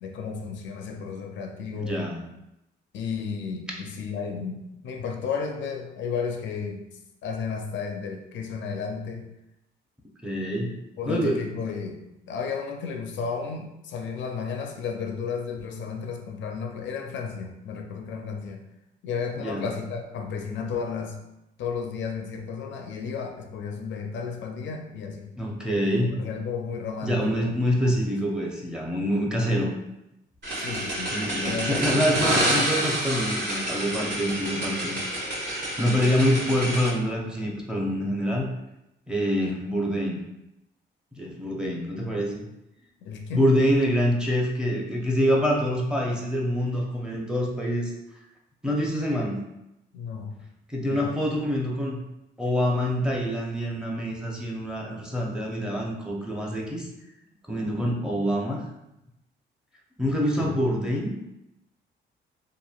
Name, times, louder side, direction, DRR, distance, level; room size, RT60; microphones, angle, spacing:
voice 1, 0.0-2.0 2.9-6.8 7.2-9.3 11.0-18.6 19.0-21.2 21.6-25.3 26.1-27.5 27.8-27.9 30.6-31.1 31.5-32.6 43.0-43.5 49.9-50.4 50.8-51.2 60.4-60.5, left 5 dB, 70° left, 3 dB, 0.4 m, -33 dB
voice 2, 1.7-2.2 10.2-10.7 11.1-11.5 19.4-19.6 25.4-26.2 27.0-29.7 31.1-35.0 35.8-38.5 39.1-40.2 41.2-42.4 43.3-47.9 48.6-49.4 50.7-52.0 52.4-56.9 57.5-58.6 60.0-61.1, equal, 5° right, -2 dB, 0.6 m, -26 dB
sound 1, 30.4-36.9, right 1 dB, 65° right, 1.4 m, -28 dB
3.0 x 2.5 x 2.4 m, 0.88 s
cardioid pair, 90°, 20 cm